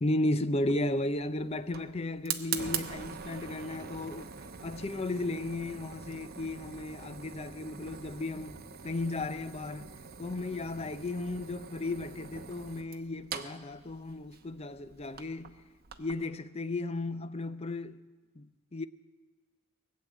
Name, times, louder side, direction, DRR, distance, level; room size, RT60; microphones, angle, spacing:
voice 1, 0.0-4.3 4.6-8.6 8.8-15.6 16.0-18.1 18.4-18.9, left 2 dB, 30° left, 0.5 m, -34 dB
Fire, 0.6-16.2, right 7 dB, 45° right, 0.9 m, -43 dB
19.5 x 7.6 x 9.1 m
head